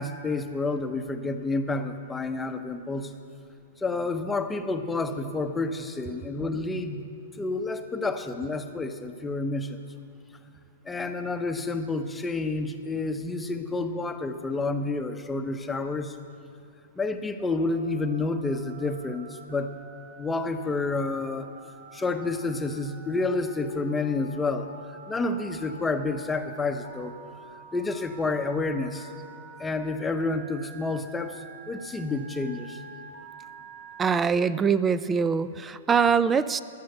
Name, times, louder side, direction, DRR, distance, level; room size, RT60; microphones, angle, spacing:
voice 1, 0.0-3.1 3.8-7.0 7.4-9.8 10.9-16.1 17.0-19.7 20.2-21.5 21.9-24.7 25.1-27.2 27.7-29.1 29.6-31.4 31.7-32.8, left 3 dB, 10° left, 7 dB, 0.9 m, -29 dB
Telephone, 17.4-34.1, right 3 dB, 45° right, 4.5 m, -48 dB
voice 2, 34.0-36.6, right 6 dB, 15° right, 15 dB, 0.4 m, -23 dB
14.0 x 10.5 x 8.0 m, 2.7 s
hypercardioid pair, 145°, 0 cm